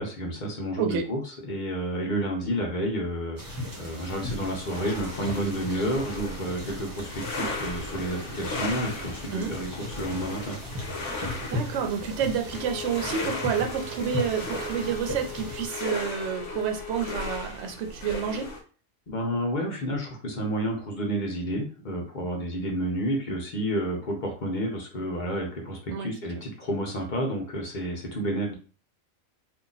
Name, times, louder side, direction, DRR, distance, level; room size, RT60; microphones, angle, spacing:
voice 1, 0.0-10.6 19.1-28.5, right 1 dB, 40° left, 0 dB, 1.0 m, -30 dB
sound 1, 3.4-15.7, left 1 dB, 15° right, 0.9 m, -37 dB
sound 2, 4.7-18.6, left 2 dB, 65° left, 1.1 m, -37 dB
voice 2, 11.5-18.5 25.9-26.1, right 7 dB, 65° right, 4 dB, 0.8 m, -29 dB
Bowed string instrument, 12.4-17.5, left 4 dB, ahead, 1.3 m, -40 dB
2.8 x 2.5 x 3.9 m, 0.38 s
omnidirectional pair, 1.4 m